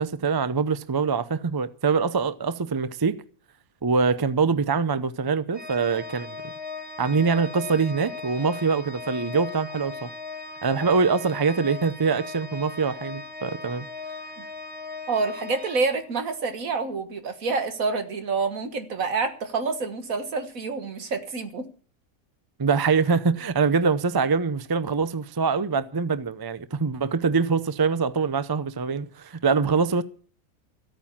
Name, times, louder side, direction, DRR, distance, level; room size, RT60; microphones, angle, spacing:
voice 1, 0.0-3.1 3.8-6.4 7.0-10.1 10.6-13.9 22.6-30.0, right 5 dB, 35° right, 0.4 m, -24 dB
Organ, 5.5-16.4, left 4 dB, 5° right, 1.3 m, -38 dB
voice 2, 15.1-21.7, right 4 dB, 75° right, 2.0 m, -27 dB
14.0 x 8.9 x 7.2 m
omnidirectional pair, 1.5 m